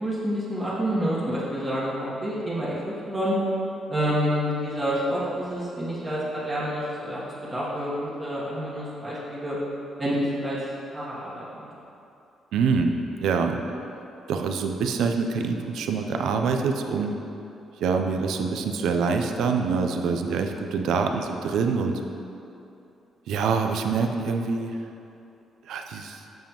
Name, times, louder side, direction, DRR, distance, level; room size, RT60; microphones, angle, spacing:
voice 1, 0.0-3.4 3.9-9.6 10.0-10.6 10.9-11.6, equal, 25° right, -8 dB, 1.3 m, -28 dB
voice 2, 12.5-13.0 13.2-13.6 14.3-17.2 17.8-22.0 23.3-24.8 25.7-26.2, right 5 dB, 80° right, 5 dB, 0.4 m, -25 dB
7.5 x 5.2 x 3.0 m, 2.8 s
cardioid pair, 90°, 0 cm